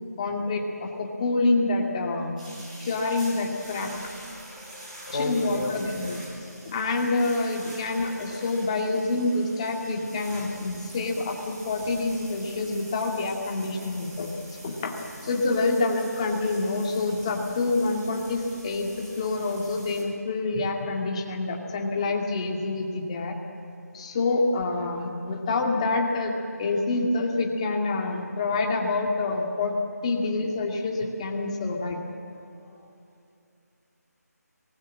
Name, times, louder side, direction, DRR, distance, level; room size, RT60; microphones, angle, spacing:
voice 1, 0.2-2.4 2.8-3.9 5.1-6.2 6.6-14.3 14.6-14.9 15.2-23.4 23.9-29.7 30.0-32.0, left 3 dB, 20° left, 1 dB, 2.0 m, -27 dB
sound 1, 2.4-20.0, right 1 dB, 25° right, 7.6 m, -45 dB
voice 2, 5.1-6.0 32.7-32.9, left 2 dB, 55° left, 1 dB, 4.0 m, -31 dB
25.0 x 19.5 x 7.5 m, 2.5 s
figure-of-eight pair, 170°, 9 cm